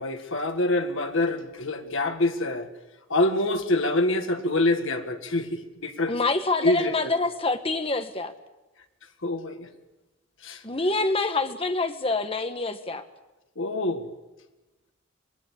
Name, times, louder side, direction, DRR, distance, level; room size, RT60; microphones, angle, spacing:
voice 1, 0.0-2.7 3.1-6.1 6.6-7.1 9.2-9.7 10.4-10.6 13.6-14.1, left 2 dB, 70° left, 1.9 m, -26 dB
voice 2, 6.1-8.3 10.6-13.0, left 3 dB, 25° left, 1.5 m, -26 dB
25.0 x 20.0 x 8.4 m
head